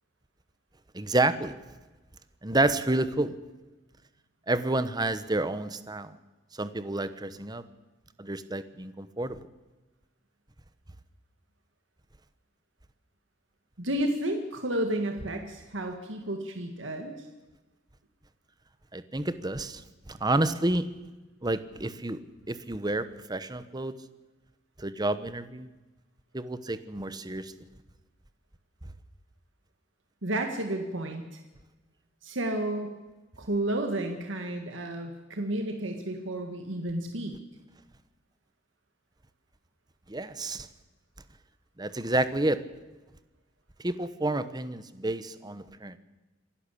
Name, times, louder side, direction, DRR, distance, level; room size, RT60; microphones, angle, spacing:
voice 1, 0.9-1.6 2.4-3.4 4.5-6.1 6.6-7.6 8.2-9.4 18.9-19.8 20.1-20.9 21.4-22.2 22.5-24.0 24.8-25.7 26.3-27.5 40.1-40.7 41.8-42.6 43.8-46.0, right 2 dB, 20° right, 13 dB, 1.0 m, -29 dB
voice 2, 13.8-17.2 30.2-31.4 32.2-32.9 33.4-37.4, right 1 dB, 70° right, 4 dB, 1.9 m, -31 dB
26.5 x 11.5 x 8.4 m, 1.2 s
head